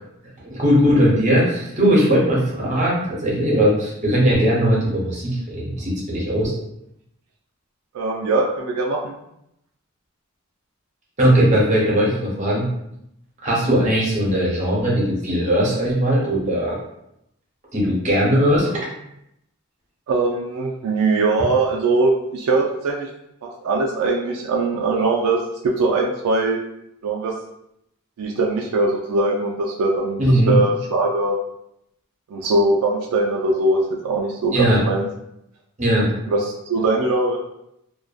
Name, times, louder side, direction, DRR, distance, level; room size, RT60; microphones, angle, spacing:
voice 1, 0.4-6.5 11.2-12.7 13.4-16.8 17.7-18.9 30.2-30.6 34.5-34.8 35.8-36.1, equal, 30° right, -4 dB, 0.7 m, -19 dB
voice 2, 7.9-9.1 20.1-23.1 23.4-26.6 27.0-27.3 28.2-31.4 32.3-35.0 36.3-37.4, right 2 dB, 85° right, -1 dB, 0.3 m, -21 dB
2.5 x 2.2 x 2.3 m, 0.79 s
head